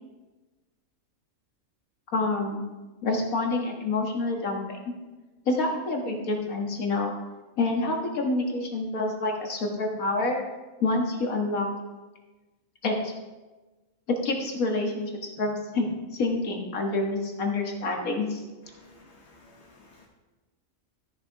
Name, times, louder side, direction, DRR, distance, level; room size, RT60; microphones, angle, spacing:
voice 1, 2.1-2.6 3.0-4.8 5.5-7.1 7.6-10.4 10.8-11.7 12.8-13.1 14.1-15.1 15.4-18.4, left 2 dB, 90° left, 2 dB, 2.0 m, -27 dB
voice 2, 18.7-20.1, left 2 dB, 55° left, -1 dB, 1.5 m, -55 dB
13.5 x 6.8 x 4.7 m, 1.2 s
omnidirectional pair, 1.4 m